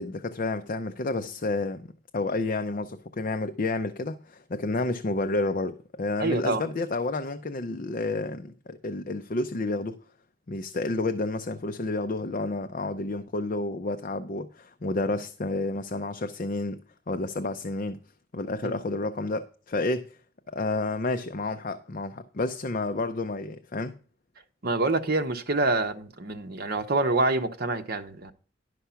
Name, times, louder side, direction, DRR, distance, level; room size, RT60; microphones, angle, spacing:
voice 1, 0.0-1.9 2.1-10.0 10.5-18.0 18.3-20.2 20.5-24.0, left 2 dB, 45° left, 0.6 m, -30 dB
voice 2, 6.2-6.6 18.6-18.7 24.6-28.3, right 2 dB, 55° right, 1.1 m, -26 dB
11.5 x 5.7 x 5.7 m
head